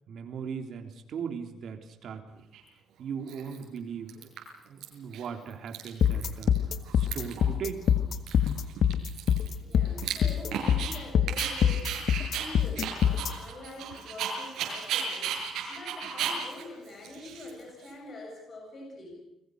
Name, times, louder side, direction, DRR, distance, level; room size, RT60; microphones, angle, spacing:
voice 1, 0.1-2.4 3.0-4.3 4.7-6.5 6.9-7.8, right 7 dB, 55° right, 5 dB, 3.6 m, -38 dB
Dog, 2.5-2.6 3.3-3.8 4.1-4.8 5.1-5.3 5.5-6.6 6.8-7.5 7.8-7.9 8.3-10.9 11.3-17.9, right 7 dB, 75° right, 6.7 m, -35 dB
sound 1, 6.0-13.3, left 9 dB, 55° left, 1.6 m, -24 dB
voice 2, 9.5-19.2, left 2 dB, 35° left, 0 dB, 7.6 m, -45 dB
30.0 x 22.0 x 6.6 m, 0.89 s
cardioid pair, 145°, 0 cm